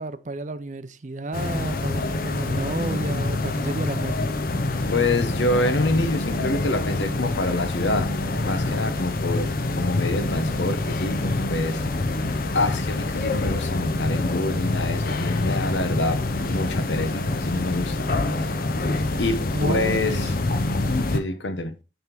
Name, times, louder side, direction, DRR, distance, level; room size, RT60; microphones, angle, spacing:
voice 1, 0.0-4.3 19.5-20.3, right 2 dB, 45° right, 0.6 m, -31 dB
sound 1, 1.3-21.2, left 2 dB, 50° left, 0.7 m, -26 dB
voice 2, 4.9-8.1 8.4-11.8 12.5-18.1 19.2-20.3 21.1-21.7, left 2 dB, 90° left, 1.0 m, -26 dB
9.5 x 3.6 x 4.5 m
head